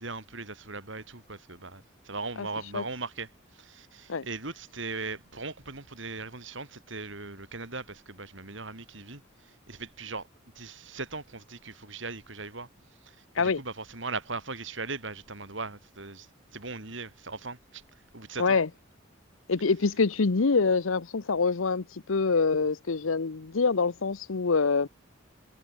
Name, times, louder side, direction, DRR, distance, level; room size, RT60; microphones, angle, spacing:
voice 1, 0.0-10.3 10.6-12.7 13.0-16.3 16.5-17.8 18.1-18.6, right 3 dB, 65° right, 5.1 m, -39 dB
voice 2, 18.4-18.7 19.5-24.9, left 4 dB, 80° left, 0.8 m, -25 dB
head